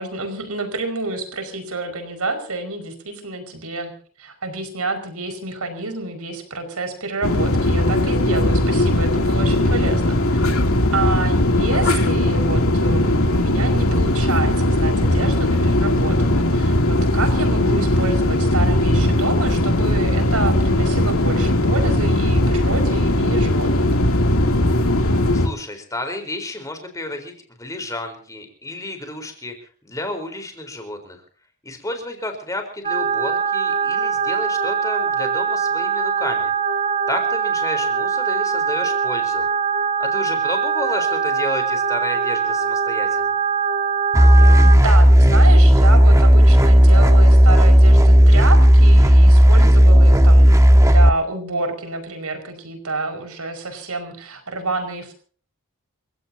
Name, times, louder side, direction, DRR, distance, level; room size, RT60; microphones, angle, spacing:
voice 1, 0.0-3.9 4.2-10.6 10.9-24.0 44.6-55.1, right 3 dB, 90° right, 6 dB, 5.2 m, -28 dB
sound 1, 7.2-25.5, left 1 dB, 75° left, 2.8 m, -18 dB
voice 2, 25.3-31.2 31.6-36.5 37.1-39.5 40.0-43.3, left 1 dB, 15° left, 5 dB, 4.1 m, -31 dB
sound 2, 32.8-44.8, right 6 dB, 30° right, 1.4 m, -22 dB
sound 3, 44.1-51.1, equal, 15° right, 1.3 m, -11 dB
29.0 x 16.5 x 2.8 m, 0.43 s
head